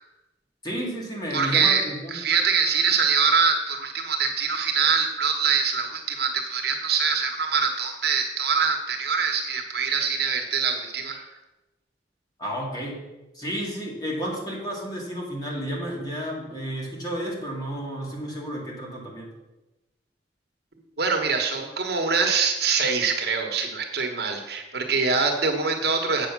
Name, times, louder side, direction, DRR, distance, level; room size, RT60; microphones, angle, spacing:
voice 1, 0.6-2.2 12.4-13.0 13.3-19.3, equal, 20° left, -2 dB, 2.3 m, -32 dB
voice 2, 1.3-1.9 2.1-11.3 21.0-26.3, right 5 dB, 60° right, 3 dB, 1.3 m, -24 dB
8.2 x 6.9 x 6.0 m, 1.0 s
head